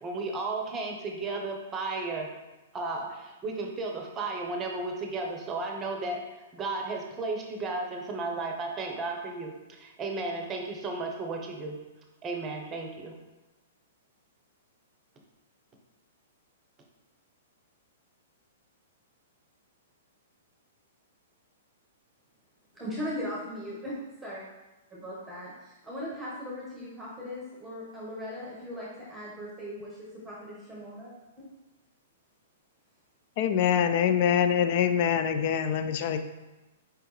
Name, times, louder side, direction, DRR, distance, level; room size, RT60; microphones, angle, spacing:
voice 1, 0.0-2.3 2.7-6.2 6.5-11.8 12.2-13.2, right 3 dB, 25° right, 1 dB, 0.8 m, -34 dB
voice 2, 22.7-24.4 24.9-30.0 30.2-31.5, equal, 5° right, -6 dB, 1.1 m, -38 dB
voice 3, 33.4-36.2, left 8 dB, 50° left, 8 dB, 0.4 m, -24 dB
4.7 x 3.4 x 3.1 m, 1.1 s
hypercardioid pair, 125°, 0 cm